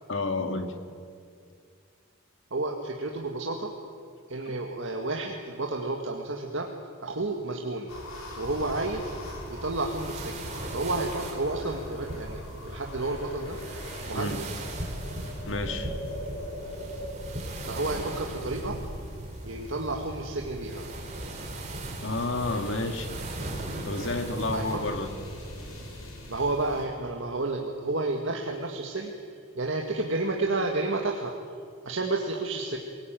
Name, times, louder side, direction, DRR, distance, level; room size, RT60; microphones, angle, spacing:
voice 1, 0.1-0.8 14.1-14.4 15.5-15.9 22.0-23.2 23.8-25.1, left 2 dB, 55° left, 7 dB, 2.0 m, -30 dB
voice 2, 2.5-3.7 4.3-6.7 7.0-7.9 8.4-9.1 9.5-13.6 14.0-14.6 17.6-18.8 19.4-20.9 24.5-24.8 26.3-29.1 29.6-31.3 31.8-32.8, right 2 dB, 60° right, 1 dB, 2.0 m, -31 dB
sound 1, 7.9-26.8, left 1 dB, 80° left, 5.9 m, -42 dB
sound 2, 8.4-26.0, right 1 dB, 30° right, 3.7 m, -39 dB
26.5 x 19.0 x 9.2 m, 2.2 s
head